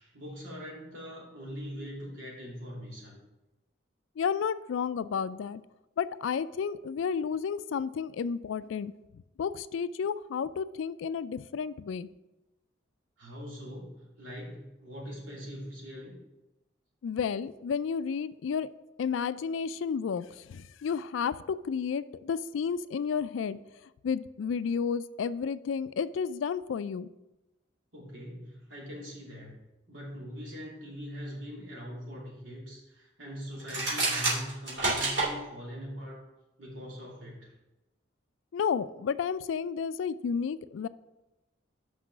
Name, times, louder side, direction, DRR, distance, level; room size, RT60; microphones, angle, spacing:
voice 1, 0.0-3.2 13.2-16.2 27.9-29.6 29.9-36.3 36.6-37.5, equal, 80° right, -4 dB, 2.8 m, -42 dB
voice 2, 4.2-5.6 6.0-8.9 9.4-12.1 17.0-18.7 19.0-23.6 24.0-27.1 38.5-40.9, left 6 dB, 80° left, 16 dB, 0.3 m, -31 dB
sound 1, 33.6-35.3, right 2 dB, 65° right, 3.0 m, -28 dB
6.0 x 5.5 x 6.1 m, 0.99 s
head